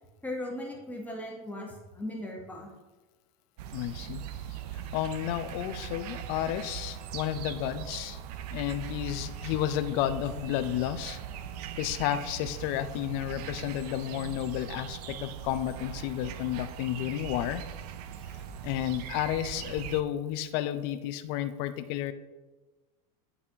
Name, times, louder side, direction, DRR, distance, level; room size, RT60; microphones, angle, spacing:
voice 1, 0.2-2.7, left 1 dB, 10° left, -2 dB, 1.1 m, -38 dB
sound 1, 3.6-20.0, right 10 dB, 80° right, 0.5 m, -40 dB
voice 2, 3.7-4.2 4.7-8.2 8.5-11.2 11.8-17.6 18.6-22.1, left 12 dB, 55° left, 12 dB, 0.5 m, -32 dB
11.0 x 4.1 x 2.8 m, 1.2 s
supercardioid pair, 130°, 20 cm